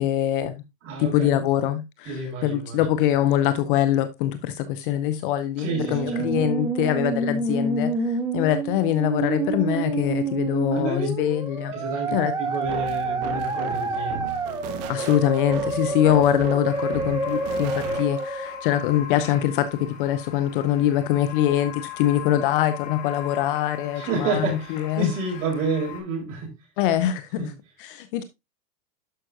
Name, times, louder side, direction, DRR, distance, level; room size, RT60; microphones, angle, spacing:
voice 1, 0.0-0.6 1.0-11.7 12.1-12.3 14.9-25.1 26.8-27.5 27.8-28.2, left 12 dB, 35° left, 0.6 m, -23 dB
voice 2, 0.8-1.4 2.1-2.8 5.6-6.4 10.7-11.1 11.7-14.2 23.9-26.5 27.4-27.5, right 4 dB, 50° right, 5.5 m, -30 dB
Musical instrument, 5.6-18.6, right 3 dB, 10° right, 1.3 m, -28 dB
sound 1, 12.6-18.3, right 8 dB, 30° right, 1.0 m, -37 dB
sound 2, 16.6-26.0, left 10 dB, 50° left, 3.1 m, -40 dB
11.5 x 5.6 x 2.6 m
supercardioid pair, 145°, 49 cm